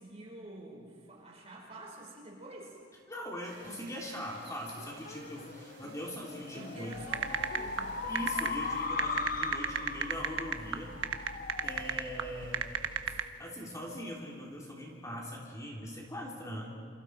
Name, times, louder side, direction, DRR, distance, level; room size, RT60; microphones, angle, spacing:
voice 1, 0.0-2.8 6.5-8.1, right 1 dB, 35° right, -1 dB, 5.3 m, -48 dB
voice 2, 3.1-6.9 8.1-10.9 11.2-11.4 11.6-12.7 13.1-16.7, equal, 15° left, -2 dB, 3.3 m, -41 dB
sound 1, 3.4-8.9, right 4 dB, 65° right, 3.9 m, -56 dB
sound 2, 4.4-13.3, left 4 dB, 45° left, 1.1 m, -39 dB
sound 3, 6.9-13.2, right 7 dB, 85° right, 1.2 m, -33 dB
28.5 x 28.0 x 4.7 m, 2.5 s
head